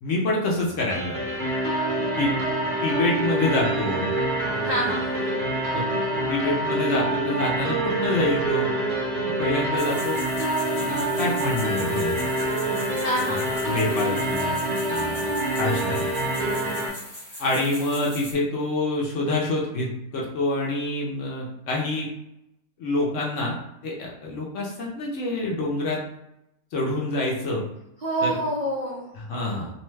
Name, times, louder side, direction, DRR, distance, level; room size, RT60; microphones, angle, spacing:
voice 1, 0.0-1.4 2.2-2.3 2.8-4.2 4.5-4.9 5.7-5.9 6.3-8.7 9.3-10.3 10.8-12.2 13.3-13.4 13.7-15.3 15.6-16.1 17.4-22.1 22.8-23.6 23.8-26.0 26.7-27.7 28.2-28.4 29.2-29.7, left 2 dB, 65° left, -3 dB, 0.9 m, -27 dB
sound 1, 0.9-16.9, right 1 dB, 45° right, 0.6 m, -26 dB
voice 2, 4.6-5.3 13.0-13.7 28.0-29.1, right 1 dB, 85° right, -6 dB, 0.3 m, -27 dB
sound 2, 9.8-18.3, left 1 dB, 30° left, 0.6 m, -40 dB
2.7 x 2.2 x 3.1 m, 0.87 s
omnidirectional pair, 1.6 m